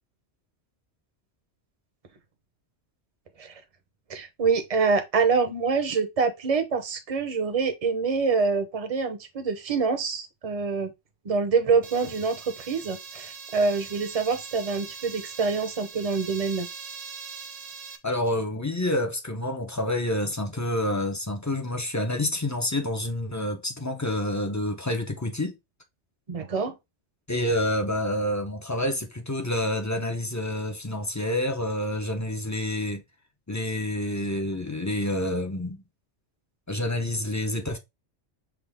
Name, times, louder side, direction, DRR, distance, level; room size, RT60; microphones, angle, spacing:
voice 1, 4.1-10.9 11.2-16.7 26.3-26.7, right 5 dB, 35° right, 0.8 m, -26 dB
sound 1, 11.8-18.0, right 6 dB, 75° right, 1.1 m, -41 dB
voice 2, 18.0-25.6 27.3-33.0 33.5-35.8 36.7-37.8, left 1 dB, 20° left, 0.6 m, -28 dB
5.9 x 2.4 x 3.4 m
omnidirectional pair, 1.2 m